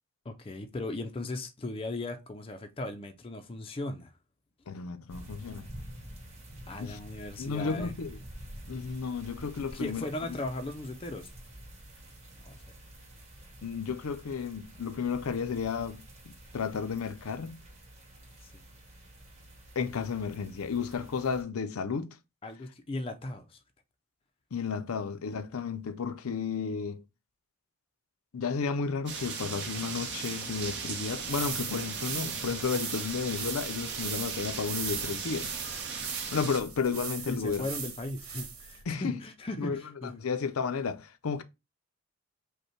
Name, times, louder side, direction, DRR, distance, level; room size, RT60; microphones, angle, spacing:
voice 1, 0.2-4.1 6.7-8.0 9.7-11.3 12.4-12.6 18.4-18.6 22.4-23.6 37.3-40.1, left 2 dB, 25° left, 0.4 m, -37 dB
voice 2, 4.7-5.7 6.8-7.0 7.4-8.2 8.7-10.1 13.6-17.6 19.8-22.2 24.5-27.0 28.3-35.5 36.3-37.6 38.9-39.2 39.6-39.8 40.1-41.4, left 5 dB, 85° left, 0.5 m, -33 dB
sound 1, 5.1-21.4, right 1 dB, 30° right, 1.9 m, -49 dB
sound 2, 29.1-36.6, right 6 dB, 55° right, 1.0 m, -37 dB
sound 3, 31.1-38.8, right 6 dB, 80° right, 1.4 m, -39 dB
5.3 x 2.2 x 4.3 m
head